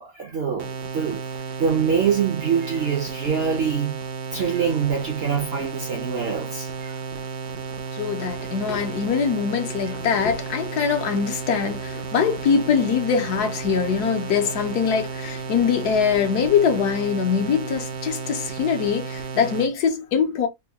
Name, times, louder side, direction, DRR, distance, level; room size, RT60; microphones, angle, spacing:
voice 1, 0.0-4.0 4.3-7.0, right 6 dB, 55° right, 0.7 m, -25 dB
sound 1, 0.6-19.7, right 5 dB, 70° right, 1.2 m, -33 dB
voice 2, 7.9-20.5, left 6 dB, 75° left, 1.4 m, -23 dB
3.7 x 2.3 x 3.4 m
omnidirectional pair, 1.7 m